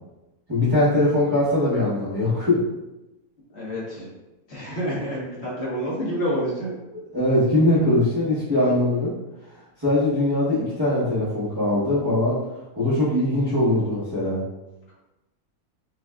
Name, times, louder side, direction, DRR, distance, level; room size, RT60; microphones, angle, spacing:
voice 1, 0.5-2.6 6.9-9.1 9.8-12.4 12.8-14.4, left 1 dB, 20° right, -12 dB, 0.8 m, -21 dB
voice 2, 3.5-4.1 4.5-6.8, equal, 50° left, -6 dB, 1.3 m, -28 dB
5.0 x 2.3 x 2.2 m, 0.99 s
omnidirectional pair, 1.6 m